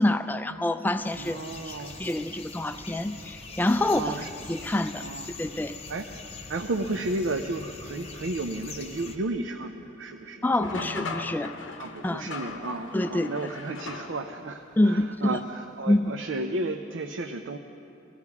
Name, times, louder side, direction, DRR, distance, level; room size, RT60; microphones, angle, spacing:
voice 1, 0.0-1.4 1.6-1.7 2.0-4.1 4.5-5.0 5.4-5.7 10.4-11.5 12.0-12.3 12.9-13.3 14.8-15.4 15.9-16.2, left 1 dB, 10° left, 10 dB, 0.3 m, -26 dB
sound 1, 0.9-9.2, left 4 dB, 30° left, 0.9 m, -43 dB
voice 2, 1.2-2.0 2.7-2.8 3.8-4.3 5.0-5.3 5.9-6.1 6.5-10.9 11.3-11.4 11.8-17.6, right 2 dB, 80° right, 5 dB, 0.6 m, -33 dB
sound 2, 10.6-14.5, left 4 dB, 80° left, 0.8 m, -38 dB
20.5 x 15.0 x 3.6 m, 2.9 s
head